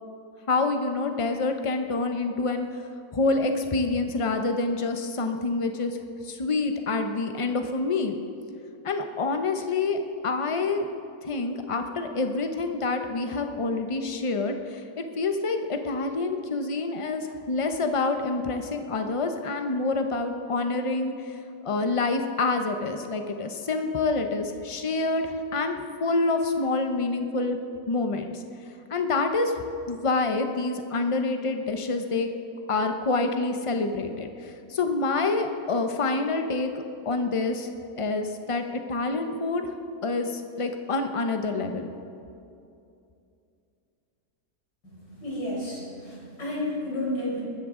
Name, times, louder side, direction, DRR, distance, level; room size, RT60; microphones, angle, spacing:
voice 1, 0.5-2.7 3.1-6.0 6.2-8.2 8.8-10.0 10.2-10.9 11.2-21.4 21.6-27.6 27.9-28.4 28.9-29.5 29.9-32.3 32.7-36.7 37.0-37.7 38.0-38.6 38.9-39.7 40.0-41.9, left 3 dB, 40° left, 6 dB, 0.4 m, -27 dB
voice 2, 44.8-47.4, left 1 dB, 70° left, -6 dB, 5.4 m, -32 dB
22.0 x 13.5 x 3.8 m, 2.6 s
omnidirectional pair, 1.9 m